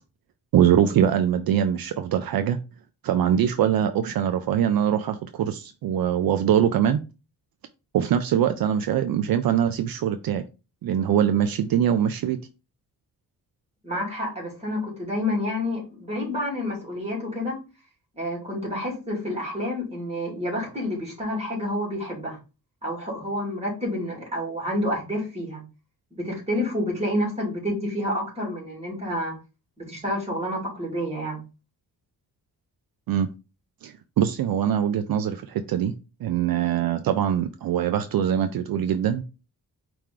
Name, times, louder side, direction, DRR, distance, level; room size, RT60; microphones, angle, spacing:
voice 1, 0.5-2.6 3.0-7.0 7.9-10.4 10.8-12.4 33.1-33.3 33.8-35.9 36.2-39.2, right 9 dB, 65° right, 9 dB, 0.5 m, -23 dB
voice 2, 13.8-17.6 18.2-22.4 22.8-25.6 26.1-29.3 29.8-31.4, left 1 dB, 15° right, -2 dB, 2.2 m, -29 dB
4.8 x 3.0 x 3.6 m, 0.30 s
wide cardioid pair, 155°, 37 cm